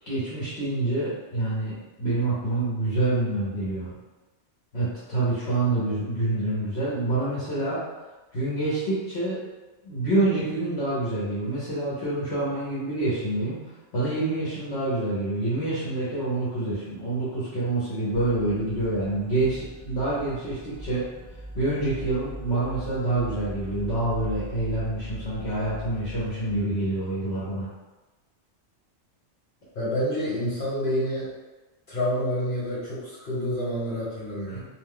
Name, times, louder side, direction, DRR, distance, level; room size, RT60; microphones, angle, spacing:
voice 1, 0.0-3.9 4.7-7.8 8.3-9.4 9.8-13.6 13.9-21.0 21.5-27.7 34.5-34.7, right 2 dB, 65° left, -10 dB, 1.1 m, -27 dB
sound 1, 18.1-26.6, right 1 dB, 10° left, 0.7 m, -40 dB
voice 2, 29.7-31.3 31.9-34.6, equal, 45° left, -7 dB, 1.3 m, -28 dB
2.6 x 2.2 x 3.5 m, 1.1 s
omnidirectional pair, 1.2 m